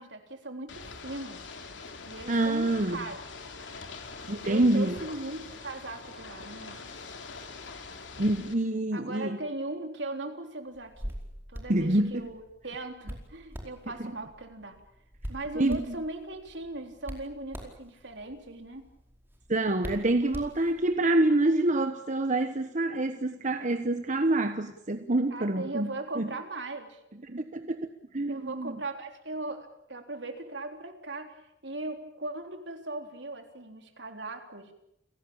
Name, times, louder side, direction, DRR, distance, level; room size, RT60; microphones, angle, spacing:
voice 1, 0.0-1.5 2.1-3.2 4.4-6.9 8.9-11.1 11.5-14.8 15.3-18.9 25.3-27.0 28.3-31.3 31.6-34.7, right 2 dB, 70° right, 5 dB, 3.8 m, -39 dB
Ocean / Boat Water vehicle, 0.7-8.5, left 4 dB, 85° left, 3.1 m, -43 dB
voice 2, 2.3-3.0 4.3-5.0 8.2-9.4 11.7-12.3 15.6-15.8 19.5-25.9 26.2-26.3 27.3-28.8, right 2 dB, 45° right, 8 dB, 1.2 m, -26 dB
Hands, 10.7-21.0, equal, 10° right, 4.8 m, -44 dB
30.0 x 17.5 x 8.9 m, 0.80 s
head